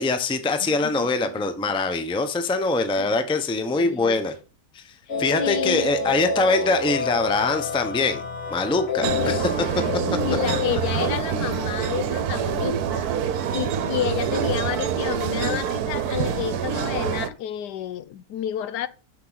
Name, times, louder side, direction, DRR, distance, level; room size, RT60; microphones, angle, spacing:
voice 1, 0.0-4.4 4.7-4.8 5.2-8.2 8.5-9.4, left 3 dB, 5° left, 0.5 m, -23 dB
voice 2, 0.6-1.8 3.0-3.1 3.6-4.2 5.1-6.2 9.0-9.8 10.2-13.1 13.5-18.9, left 11 dB, 75° left, 1.2 m, -31 dB
sound 1, 5.1-10.7, left 4 dB, 50° left, 3.1 m, -29 dB
sound 2, 9.0-17.3, right 8 dB, 70° right, 1.3 m, -26 dB
12.0 x 5.5 x 4.0 m
omnidirectional pair, 1.8 m